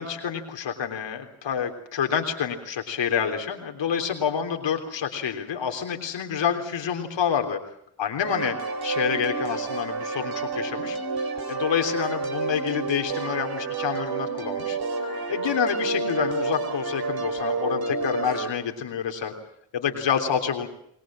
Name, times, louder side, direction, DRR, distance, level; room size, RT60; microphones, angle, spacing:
voice 1, 0.0-7.6 8.0-8.6 8.8-14.8 15.3-19.3 19.7-20.7, left 7 dB, 70° left, 5 dB, 3.5 m, -28 dB
sound 1, 8.2-18.5, right 3 dB, 55° right, 4.1 m, -29 dB
28.5 x 20.0 x 7.6 m, 0.73 s
supercardioid pair, 50°, 45 cm